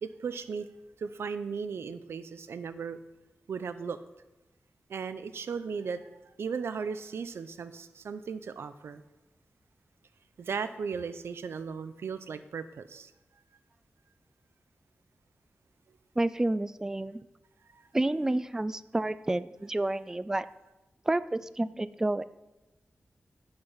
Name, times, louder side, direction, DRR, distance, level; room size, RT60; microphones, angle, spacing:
voice 1, 0.0-0.7 1.0-3.0 3.5-4.0 4.9-6.1 6.4-9.0 10.4-13.1, right 5 dB, 90° right, 12 dB, 0.7 m, -36 dB
voice 2, 16.2-17.2 17.9-20.5 21.1-22.2, right 2 dB, 15° right, 15 dB, 0.3 m, -29 dB
10.0 x 8.7 x 5.7 m, 1.0 s
wide cardioid pair, 115°, 4 cm